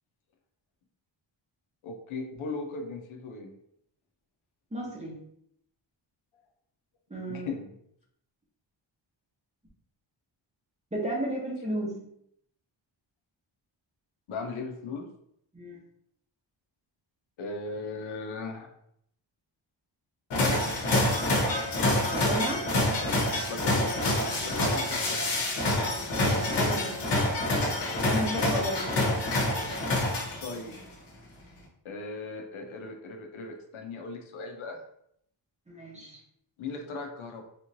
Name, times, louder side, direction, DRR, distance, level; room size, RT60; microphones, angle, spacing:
voice 1, 1.8-3.5 7.2-7.7 14.3-15.0 17.4-18.7 20.3-20.9 23.0-23.1 23.5-23.9 24.4-25.3 30.4-30.8 31.8-34.8 36.6-37.4, left 3 dB, 80° left, 3 dB, 0.7 m, -37 dB
voice 2, 4.7-5.2 7.1-7.5 10.9-12.0 15.5-15.8 22.1-22.8 26.3-27.0 28.1-28.9 35.7-36.2, equal, 15° right, -3 dB, 0.8 m, -33 dB
sound 1, 20.3-30.7, left 1 dB, 60° left, 1.0 m, -27 dB
3.3 x 3.0 x 2.6 m, 0.71 s
wide cardioid pair, 125°, 47 cm